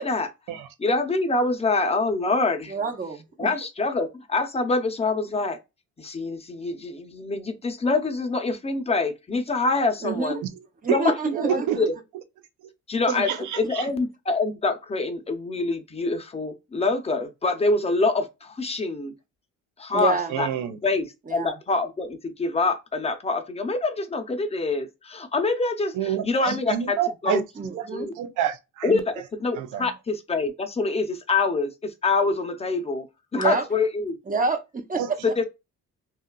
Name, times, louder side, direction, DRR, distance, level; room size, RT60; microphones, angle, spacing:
voice 1, 0.0-0.3 0.8-2.7 3.4-5.6 6.0-10.4 10.9-12.0 12.9-19.2 19.8-20.5 20.8-27.0 27.2-27.4 27.9-28.2 28.8-33.1 33.3-34.2 35.2-35.4, left 3 dB, 20° left, 0.5 m, -25 dB
voice 2, 2.7-3.5 10.0-10.4 10.8-11.9 13.1-13.4 19.9-20.4 21.3-21.5 27.6-28.1 33.3-33.6 34.3-35.3, right 4 dB, 25° right, 0.7 m, -28 dB
voice 3, 11.3-11.8 13.3-13.8 20.3-20.8 26.0-27.4 27.7-27.8 28.2-29.0 29.6-29.9 35.0-35.1, right 10 dB, 85° right, 0.6 m, -28 dB
2.7 x 2.3 x 2.2 m
cardioid pair, 90°, 30 cm